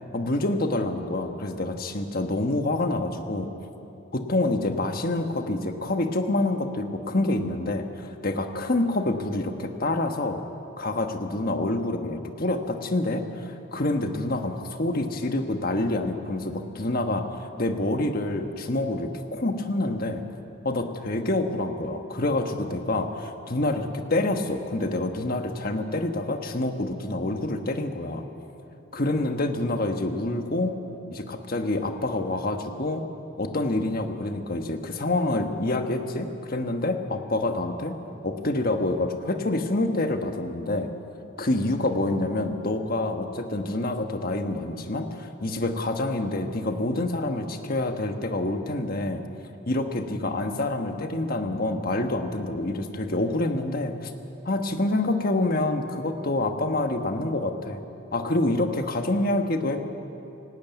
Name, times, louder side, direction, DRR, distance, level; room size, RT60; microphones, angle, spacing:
voice 1, 0.1-3.5 4.1-10.4 10.8-20.2 20.6-28.2 28.9-30.8 31.1-33.0 33.4-38.0 38.2-40.9 41.4-49.2 49.7-54.1 54.4-57.8 58.1-59.8, left 2 dB, 45° left, 6 dB, 1.3 m, -27 dB
18.0 x 17.0 x 9.3 m, 2.9 s
head